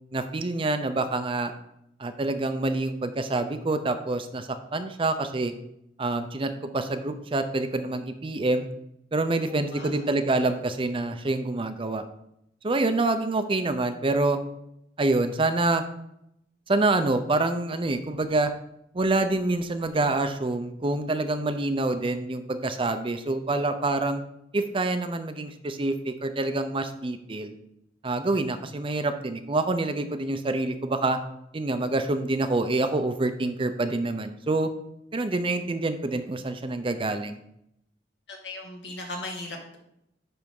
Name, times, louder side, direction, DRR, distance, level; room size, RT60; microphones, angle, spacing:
voice 1, 0.1-1.5 2.0-5.5 6.0-8.7 9.1-12.0 12.6-14.4 15.0-15.8 16.7-18.5 18.9-24.2 24.5-27.5 28.0-31.2 31.5-34.7 35.1-37.4, right 2 dB, 30° right, 9 dB, 0.5 m, -26 dB
voice 2, 9.4-10.0 38.3-39.8, left 2 dB, 70° left, 1 dB, 1.8 m, -38 dB
9.7 x 3.5 x 5.4 m, 0.78 s
head